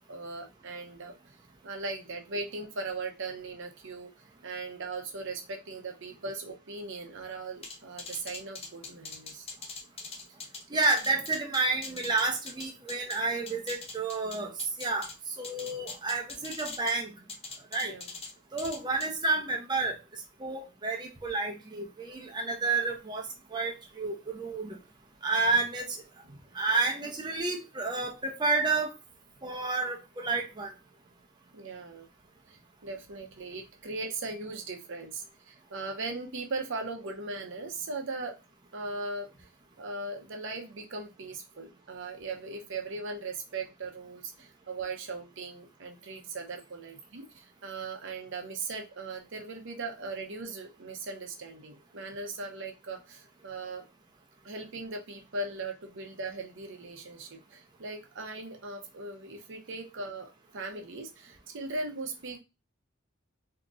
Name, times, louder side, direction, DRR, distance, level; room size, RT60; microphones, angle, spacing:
voice 1, 0.1-1.4 1.6-4.1 4.4-9.5 17.8-18.1 26.3-26.4 31.5-32.1 32.5-38.4 38.7-39.5 39.8-53.8 54.4-62.4, right 3 dB, 60° right, 3 dB, 0.8 m, -39 dB
sound 1, 7.6-13.2 13.5-15.1 15.4-17.0 17.3-18.3 18.6-19.1, left 4 dB, 30° left, 0.6 m, -42 dB
voice 2, 10.7-14.5 14.8-15.1 15.4-17.1 17.7-17.9 18.5-20.0 20.4-23.2 23.5-24.8 25.2-26.0 26.5-28.9 29.4-30.7, right 3 dB, 20° right, 0 dB, 0.6 m, -30 dB
3.8 x 2.9 x 2.4 m, 0.26 s
head